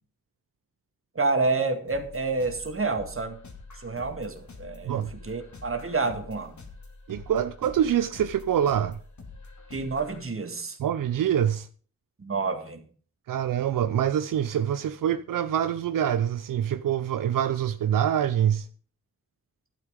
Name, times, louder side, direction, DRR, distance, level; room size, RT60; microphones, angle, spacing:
voice 1, 1.2-3.4 3.8-6.6 9.7-10.8 12.2-12.8, right 3 dB, 40° right, 1.9 m, -29 dB
sound 1, 1.9-10.2, left 3 dB, 60° left, 2.2 m, -46 dB
voice 2, 7.1-9.0 10.8-11.7 13.3-18.7, right 9 dB, 85° right, 0.5 m, -25 dB
12.0 x 8.5 x 5.1 m
cardioid pair, 70°, 32 cm